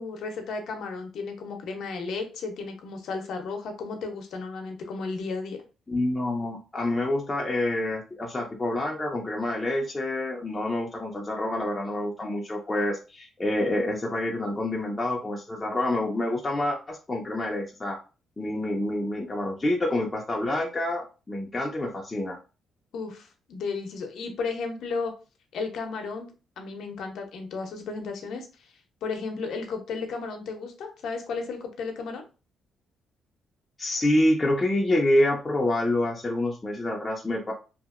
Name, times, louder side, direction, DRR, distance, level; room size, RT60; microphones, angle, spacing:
voice 1, 0.0-5.6 22.9-25.1 25.5-26.3 26.6-28.5 29.0-32.2, left 4 dB, 75° left, 4 dB, 0.7 m, -34 dB
voice 2, 5.9-18.0 18.4-22.4 33.8-37.5, left 1 dB, 20° left, -2 dB, 0.6 m, -27 dB
2.8 x 2.5 x 2.4 m, 0.32 s
cardioid pair, 90°, 0 cm